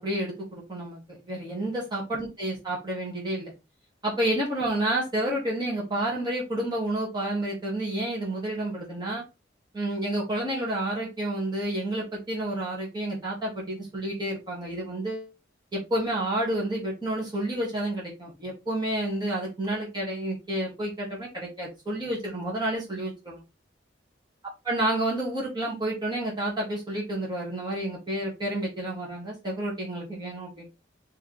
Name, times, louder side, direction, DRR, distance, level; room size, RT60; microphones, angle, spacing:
voice 1, 0.0-3.5 4.0-9.2 9.7-15.3 15.7-23.4 24.7-30.7, right 1 dB, 25° right, -5 dB, 1.8 m, -30 dB
4.9 x 3.2 x 3.1 m, 0.25 s
head